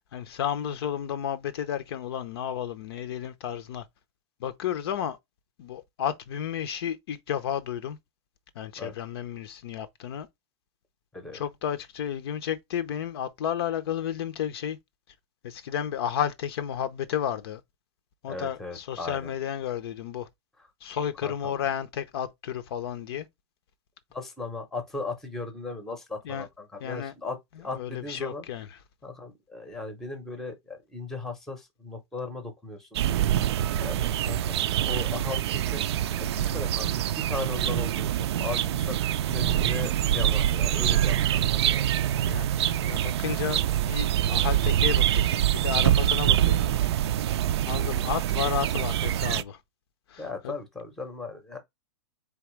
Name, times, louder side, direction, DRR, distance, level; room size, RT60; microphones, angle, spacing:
voice 1, 0.0-3.8 4.4-5.2 5.6-8.0 8.6-10.3 11.3-14.8 15.4-17.6 18.2-20.3 20.8-23.3 26.3-26.5 26.8-27.1 27.8-28.7 36.4-36.6 42.3-46.8 47.7-49.6 50.1-50.5, left 9 dB, 55° left, 0.6 m, -32 dB
voice 2, 18.3-19.3 20.6-20.7 21.2-21.6 24.1-28.4 29.0-33.0 33.8-35.8 36.2-41.9 47.9-48.0 50.2-51.6, left 3 dB, ahead, 0.7 m, -37 dB
sound 1, 32.9-49.4, right 11 dB, 60° right, 0.4 m, -25 dB
4.2 x 3.5 x 3.0 m
supercardioid pair, 165°, 16 cm